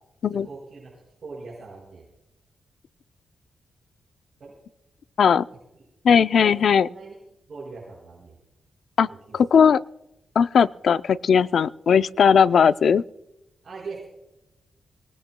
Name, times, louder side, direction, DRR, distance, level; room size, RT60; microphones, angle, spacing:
voice 1, 0.4-2.0 4.4-4.5 5.7-5.8 6.4-7.2 7.5-8.4 9.1-9.7 13.6-14.0, right 4 dB, 45° right, -4 dB, 5.2 m, -41 dB
voice 2, 6.0-6.9 9.0-9.1 9.3-9.8 10.4-13.0, left 7 dB, 55° left, 14 dB, 0.4 m, -18 dB
23.5 x 19.0 x 2.2 m, 0.92 s
wide cardioid pair, 175°, 0 cm